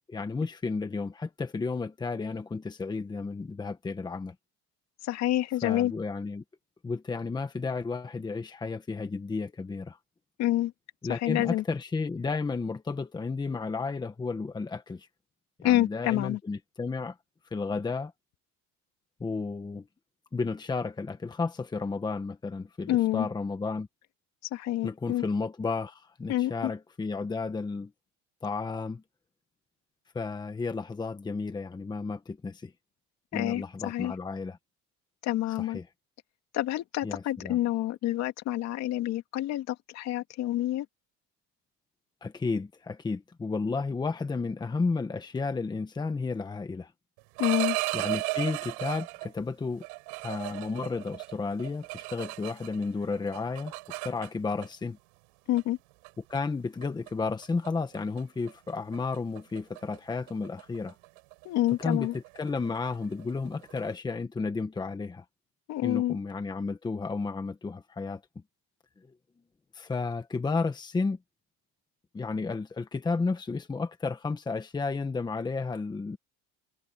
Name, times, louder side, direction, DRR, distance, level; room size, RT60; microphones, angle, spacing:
voice 1, 0.1-4.3 5.6-6.4 6.8-10.0 11.0-15.1 15.6-17.2 17.5-18.1 19.2-19.8 20.3-23.9 24.8-27.9 28.4-29.0 30.1-32.7 33.3-34.6 35.6-35.8 37.0-37.6 42.2-46.9 47.9-49.8 50.2-53.7 54.0-55.0 56.3-60.9 61.8-65.2 65.8-68.2 69.7-71.2 72.1-76.2, left 4 dB, 15° left, 1.4 m, -32 dB
voice 2, 5.0-5.9 10.4-10.7 11.1-11.6 15.6-16.4 22.9-23.3 24.5-25.2 26.3-26.7 33.3-34.1 35.2-35.8 36.5-40.9 47.4-47.8 55.5-55.8 61.4-62.1 65.7-66.2, left 14 dB, 55° left, 2.5 m, -28 dB
sound 1, 47.2-49.3 49.8-52.9 53.1-54.7 55.6-55.7 56.0-56.4 56.8-57.1 57.4-57.7 57.9-58.2 58.5-63.9, right 33 dB, 85° right, 4.6 m, -35 dB
cardioid pair, 145°, 32 cm